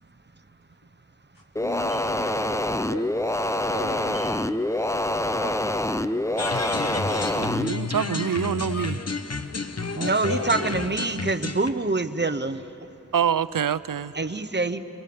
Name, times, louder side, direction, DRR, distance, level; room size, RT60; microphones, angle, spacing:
voice 1, 1.3-3.1 3.7-4.5 5.2-6.0 9.9-10.9, left 2 dB, 90° left, 2.9 m, -37 dB
sound 1, 1.6-7.7, left 1 dB, 10° left, 0.5 m, -26 dB
sound 2, 6.4-11.7, left 3 dB, 50° left, 1.0 m, -31 dB
voice 2, 7.3-9.0 13.1-14.1, right 8 dB, 80° right, 0.5 m, -26 dB
voice 3, 9.9-12.6 14.1-14.8, right 3 dB, 35° right, 0.9 m, -26 dB
28.5 x 23.5 x 7.0 m
wide cardioid pair, 50°, 32 cm